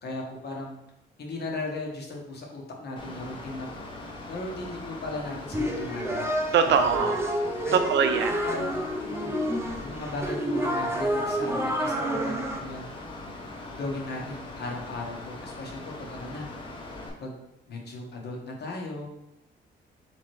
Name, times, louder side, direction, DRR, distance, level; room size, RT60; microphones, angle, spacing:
voice 1, 0.0-0.8 1.2-3.7 4.3-6.3 6.6-7.1 7.6-7.8 8.3-9.4 9.8-12.9 13.8-16.5 17.2-17.4 17.7-19.1, left 2 dB, 55° left, 0 dB, 1.2 m, -37 dB
Mechanical fan, 3.0-17.1, left 2 dB, 25° left, 1.1 m, -41 dB
sound 1, 5.5-12.6, equal, 15° right, 0.6 m, -29 dB
voice 2, 6.5-7.2 7.7-8.3, right 7 dB, 65° right, 8 dB, 0.5 m, -22 dB
3.7 x 3.1 x 4.6 m, 0.84 s
cardioid pair, 90°, 20 cm